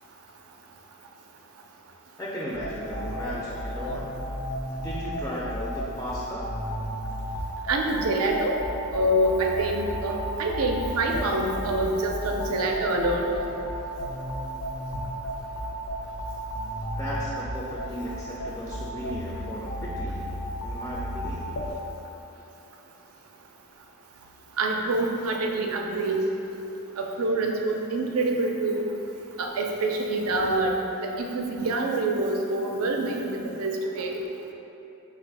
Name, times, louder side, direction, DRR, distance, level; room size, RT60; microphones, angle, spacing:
voice 1, 2.2-4.1 4.8-6.5 17.0-20.3 20.6-21.5, equal, 10° left, -6 dB, 0.4 m, -35 dB
sound 1, 2.5-21.7, equal, 75° left, 0.6 m, -34 dB
voice 2, 7.7-8.6 8.9-13.3 24.6-26.3 27.0-28.9 29.4-30.7 31.0-34.2, right 2 dB, 70° right, 2 dB, 0.4 m, -26 dB
4.1 x 2.4 x 4.5 m, 2.9 s
head